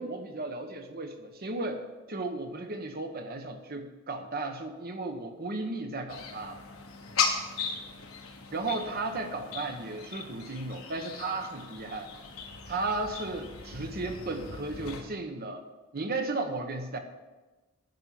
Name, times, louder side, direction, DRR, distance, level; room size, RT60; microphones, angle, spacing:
voice 1, 0.0-1.8 2.1-6.6 8.5-12.1 12.7-15.6 15.9-17.0, right 2 dB, 45° right, 6 dB, 1.2 m, -34 dB
sound 1, 6.1-15.0, left 5 dB, 85° left, 1.4 m, -37 dB
10.5 x 5.6 x 7.7 m, 1.2 s
head